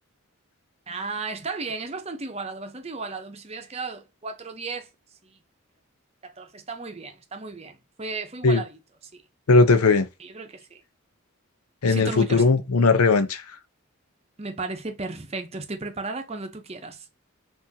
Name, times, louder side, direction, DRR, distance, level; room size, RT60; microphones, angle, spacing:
voice 1, 0.9-4.9 5.2-5.4 6.2-8.8 9.1-9.2 10.2-10.8 11.8-12.4 14.4-17.0, right 3 dB, 30° right, 0.7 m, -34 dB
voice 2, 9.5-10.0 11.8-13.4, left 3 dB, 90° left, 0.7 m, -18 dB
6.0 x 2.6 x 2.8 m
head